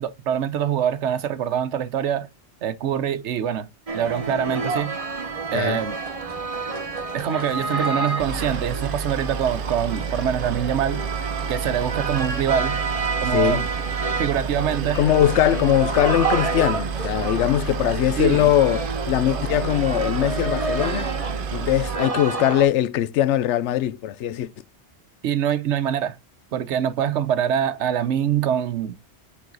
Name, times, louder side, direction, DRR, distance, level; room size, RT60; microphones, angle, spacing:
voice 1, 0.0-2.3 2.6-3.7 3.9-4.9 5.5-6.0 7.1-11.0 11.5-12.8 13.2-13.7 14.2-15.0 18.2-18.5 25.2-26.2 26.5-29.0, right 9 dB, 80° right, 1.0 m, -24 dB
sound 1, 3.9-22.7, right 3 dB, 30° right, 1.1 m, -29 dB
Boat Water vehicle, 8.2-22.0, right 6 dB, 60° right, 0.8 m, -30 dB
voice 2, 13.3-13.6 14.9-21.1 21.5-24.5, left 12 dB, 85° left, 0.9 m, -21 dB
7.7 x 3.9 x 3.8 m
omnidirectional pair, 1.2 m